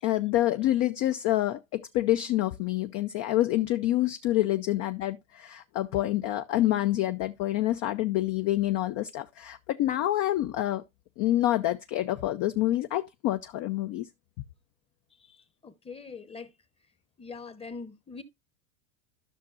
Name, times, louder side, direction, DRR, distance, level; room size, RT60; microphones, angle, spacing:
voice 1, 0.0-10.8 11.2-14.1, left 14 dB, 40° left, 0.6 m, -27 dB
voice 2, 15.2-16.5 17.2-18.2, left 4 dB, 15° left, 0.9 m, -43 dB
13.5 x 6.0 x 2.4 m
supercardioid pair, 125°, 39 cm